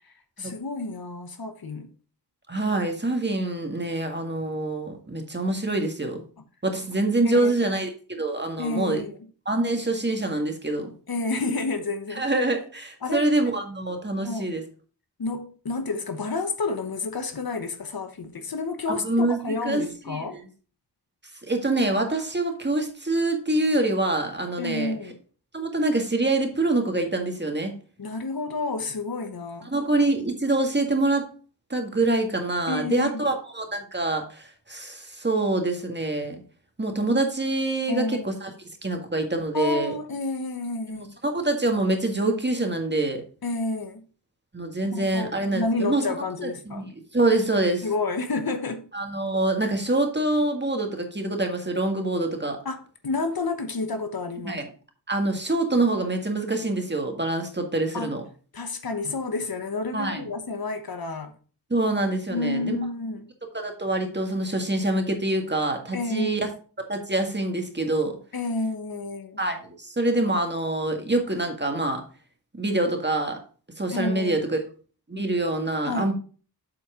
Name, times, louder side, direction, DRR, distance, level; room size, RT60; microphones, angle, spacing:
voice 1, 0.0-1.9 7.3-7.5 8.6-9.2 11.1-12.2 13.0-13.2 14.2-14.5 15.2-20.4 24.6-25.2 28.0-29.7 32.7-33.3 37.9-38.3 39.5-41.1 43.4-44.0 44.9-46.9 47.8-48.9 52.6-54.6 57.9-58.1 58.5-61.3 62.3-63.3 65.9-66.3 68.3-69.4 73.9-74.5 75.8-76.1, left 3 dB, 60° left, 1.1 m, -30 dB
voice 2, 2.5-6.2 6.6-9.0 9.4-10.9 12.1-14.6 18.9-20.4 21.5-24.9 25.5-27.7 29.7-31.2 31.7-36.4 36.8-38.5 38.8-39.9 40.9-43.2 44.5-46.1 46.4-47.9 48.9-52.6 54.4-54.7 55.1-58.2 59.9-60.3 61.7-62.8 63.5-66.5 66.9-68.2 69.4-72.0 72.6-73.4 73.8-74.6 75.1-76.1, right 2 dB, 25° right, 1.8 m, -25 dB
7.7 x 4.3 x 4.9 m
wide cardioid pair, 55°, 41 cm